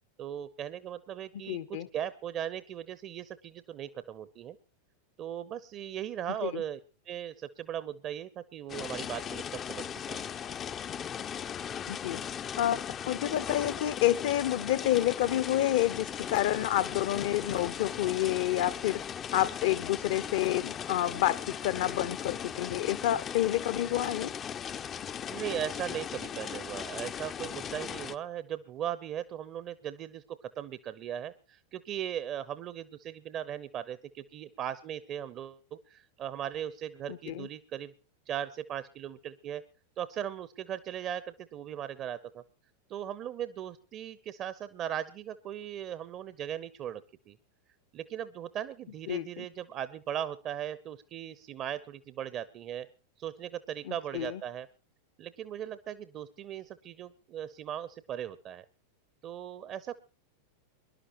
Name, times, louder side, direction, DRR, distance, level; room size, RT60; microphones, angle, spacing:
voice 1, 0.2-4.6 5.2-6.8 7.1-10.3 25.3-37.9 38.3-39.6 40.0-41.2 41.5-42.4 42.9-47.4 47.9-52.9 53.2-54.7 55.2-58.6 59.2-59.9, right 10 dB, 35° right, 15 dB, 0.8 m, -38 dB
voice 2, 1.5-1.9 6.4-6.6 11.9-12.2 12.6-12.8 13.1-19.0 19.3-24.3 37.1-37.5 49.1-49.5 53.9-54.4, left 13 dB, 55° left, 16 dB, 0.8 m, -29 dB
sound 1, 8.7-28.2, left 8 dB, 25° left, 0.6 m, -38 dB
23.0 x 11.5 x 3.0 m, 0.33 s
figure-of-eight pair, 90°, 0 cm